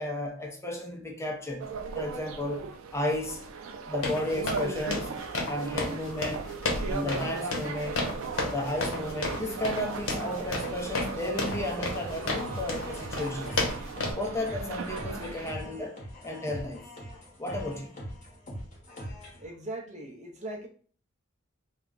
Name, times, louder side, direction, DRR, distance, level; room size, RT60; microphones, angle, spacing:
voice 1, 0.0-1.7 1.9-2.6 2.9-3.4 3.9-5.1 5.5-6.5 6.9-8.1 8.5-13.7 14.1-16.8 17.4-18.0, left 1 dB, 15° left, 0.5 m, -33 dB
sound 1, 1.6-15.5, right 4 dB, 85° right, 0.4 m, -37 dB
sound 2, 4.0-14.1, left 2 dB, 75° left, 0.8 m, -33 dB
sound 3, 11.5-19.5, equal, 35° left, 0.9 m, -42 dB
voice 2, 19.4-20.7, right 1 dB, 35° right, 0.6 m, -39 dB
2.3 x 2.1 x 3.7 m
head